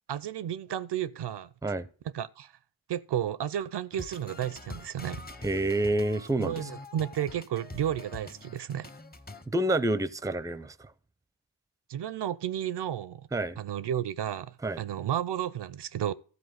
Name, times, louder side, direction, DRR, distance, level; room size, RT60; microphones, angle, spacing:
voice 1, 0.1-1.5 2.1-2.5 2.9-5.2 6.4-8.9 11.9-13.3 13.6-16.1, right 10 dB, 65° right, 0.5 m, -32 dB
sound 1, 3.9-9.5, left 2 dB, 20° left, 0.9 m, -45 dB
voice 2, 5.4-6.7 9.5-10.9 13.3-13.6 14.6-14.8, right 1 dB, 10° right, 0.5 m, -28 dB
13.0 x 4.5 x 7.8 m
cardioid pair, 50°, 43 cm